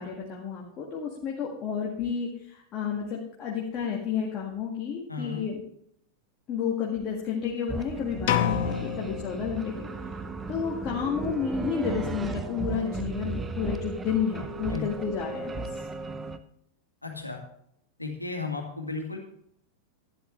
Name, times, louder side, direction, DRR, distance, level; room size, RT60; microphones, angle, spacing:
voice 1, 0.0-5.6 6.5-9.9 10.5-15.7, left 7 dB, 30° left, -3 dB, 1.9 m, -31 dB
voice 2, 5.1-5.4 14.7-14.9 17.0-17.4 18.0-19.2, left 4 dB, 85° left, 2 dB, 2.0 m, -34 dB
sound 1, 7.7-16.4, right 4 dB, 15° right, 0.7 m, -36 dB
sound 2, 8.3-10.2, left 10 dB, 50° left, 0.8 m, -29 dB
11.5 x 11.0 x 3.2 m, 0.72 s
figure-of-eight pair, 90°, 0 cm